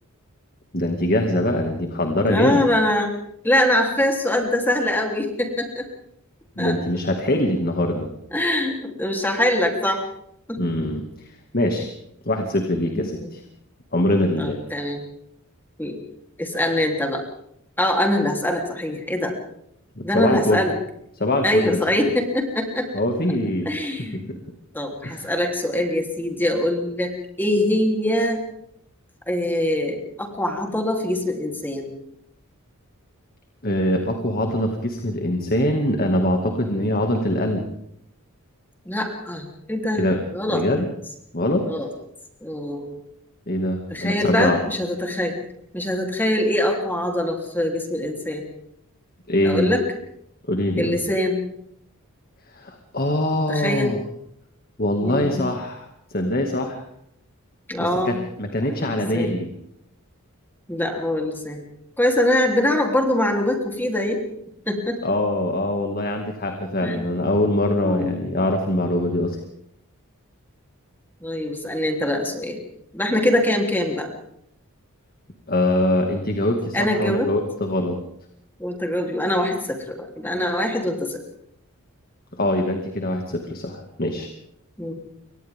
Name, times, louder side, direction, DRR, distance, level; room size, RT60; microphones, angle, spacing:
voice 1, 0.7-2.6 6.6-8.1 10.6-11.9 12.2-13.4 13.9-14.6 20.0-20.7 21.2-21.8 22.9-23.7 24.1-24.4 25.0-25.3 33.6-37.7 40.0-40.2 40.5-40.9 41.3-41.7 43.5-44.6 49.3-49.7 50.5-51.0 52.5-54.0 54.8-55.9 56.1-56.8 57.8-59.5 65.0-69.4 75.5-78.0 82.3-84.3, left 1 dB, 40° left, 3 dB, 2.3 m, -23 dB
voice 2, 2.3-3.1 3.4-5.9 6.6-6.7 8.3-10.0 10.5-10.6 13.0-13.3 14.4-15.0 15.8-16.0 16.4-17.2 17.8-19.3 20.0-20.7 21.4-22.9 23.7-24.2 24.7-27.1 27.4-28.4 29.3-31.9 36.8-37.0 38.9-40.1 40.3-40.6 41.6-41.9 42.4-42.9 43.9-45.4 45.7-48.4 49.4-49.8 50.8-51.4 53.5-53.9 55.0-55.4 57.7-58.2 58.8-59.4 60.7-61.6 62.0-64.2 64.7-65.0 66.8-67.1 67.8-68.2 71.2-72.6 72.9-74.1 76.7-77.3 78.6-81.2 84.8-84.9, left 1 dB, 10° left, 1 dB, 3.4 m, -23 dB
29.0 x 24.5 x 3.7 m, 0.73 s
head